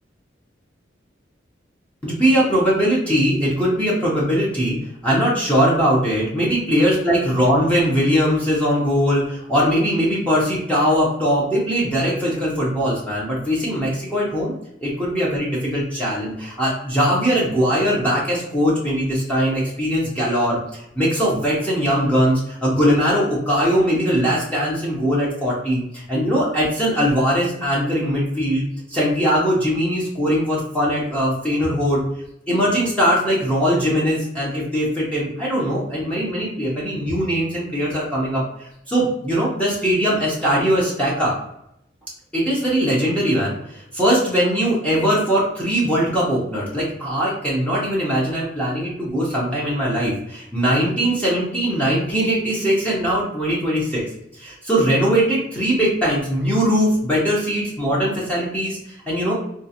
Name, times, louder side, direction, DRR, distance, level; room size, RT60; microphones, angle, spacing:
voice 1, 2.0-4.8 5.0-14.5 14.8-32.0 32.5-38.4 38.9-41.3 42.3-54.0 54.4-59.3, equal, 5° left, -6 dB, 0.8 m, -20 dB
3.7 x 2.4 x 2.8 m, 0.76 s
head